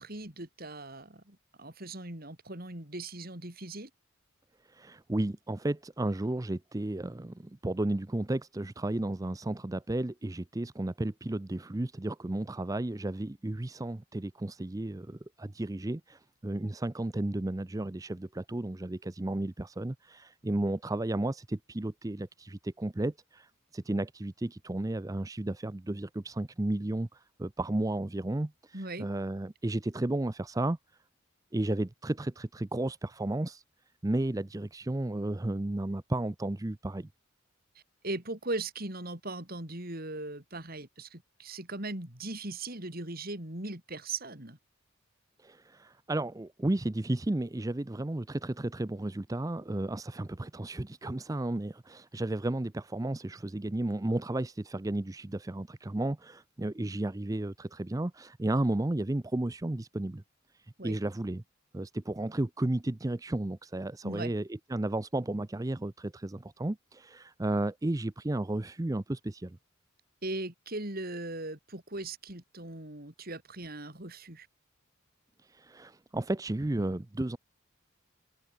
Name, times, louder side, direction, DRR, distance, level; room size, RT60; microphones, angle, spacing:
voice 1, 0.0-3.9 28.7-29.1 38.0-44.6 60.8-61.0 64.0-64.3 70.2-74.5, right 2 dB, 45° right, 4.4 m, -39 dB
voice 2, 4.7-30.8 31.5-33.6 34.0-37.1 45.4-60.2 60.8-61.4 61.7-69.6 75.4-77.4, right 1 dB, 15° right, 0.5 m, -33 dB
head